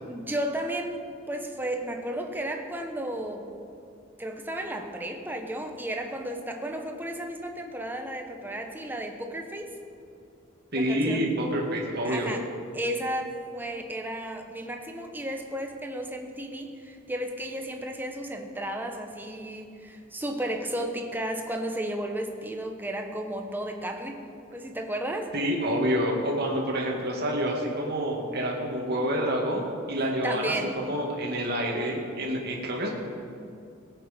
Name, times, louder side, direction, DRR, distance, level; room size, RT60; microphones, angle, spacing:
voice 1, 0.1-3.4 4.2-9.8 10.7-11.3 12.0-12.5 12.7-24.2 24.5-25.3 30.2-30.7, right 1 dB, 10° right, 3 dB, 1.1 m, -33 dB
voice 2, 10.7-12.3 25.3-32.9, equal, 55° right, -1 dB, 2.1 m, -28 dB
19.5 x 8.7 x 5.3 m, 2.4 s
head